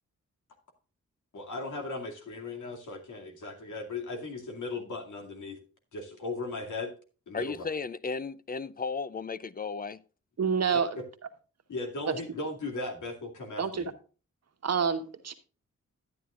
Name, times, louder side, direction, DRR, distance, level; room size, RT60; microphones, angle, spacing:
voice 1, 1.3-5.6 5.9-6.9 7.3-7.5 10.7-11.0 11.7-13.9, left 2 dB, 80° left, 2.4 m, -37 dB
voice 2, 7.3-10.0, left 4 dB, 30° left, 0.5 m, -35 dB
voice 3, 10.4-10.9 13.6-13.8 14.6-15.3, right 6 dB, 60° right, 1.3 m, -27 dB
12.5 x 9.3 x 2.4 m
wide cardioid pair, 95°, 30 cm